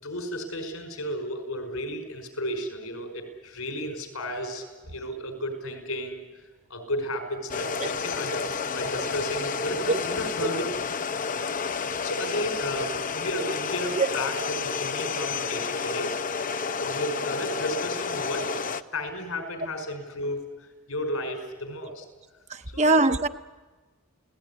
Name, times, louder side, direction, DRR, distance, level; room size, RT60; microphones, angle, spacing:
voice 1, 0.0-6.2 6.7-10.6 12.0-16.2 16.8-18.5 18.9-20.4 20.9-22.0 22.7-23.0, left 1 dB, 80° left, 5.2 m, -33 dB
sound 1, 7.5-18.8, left 5 dB, 40° left, 0.7 m, -30 dB
voice 2, 22.5-23.3, right 2 dB, 30° right, 0.8 m, -22 dB
29.0 x 18.0 x 9.8 m
head